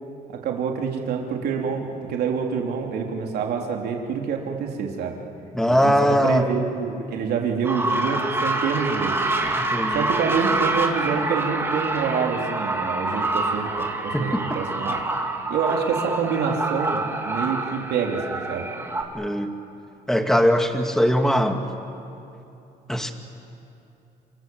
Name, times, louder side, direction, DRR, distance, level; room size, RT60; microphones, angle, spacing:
voice 1, 0.3-5.2 5.7-9.2 9.9-15.0 15.5-18.7, right 6 dB, 70° right, 1 dB, 3.6 m, -27 dB
voice 2, 5.5-6.5 9.7-10.1 14.1-14.6 19.1-19.5 20.1-21.6 22.9-23.1, equal, 5° left, 5 dB, 2.2 m, -21 dB
sound 1, 7.6-19.0, right 2 dB, 15° right, 3.0 m, -26 dB
28.5 x 26.5 x 7.8 m, 2.8 s
cardioid pair, 110°, 17 cm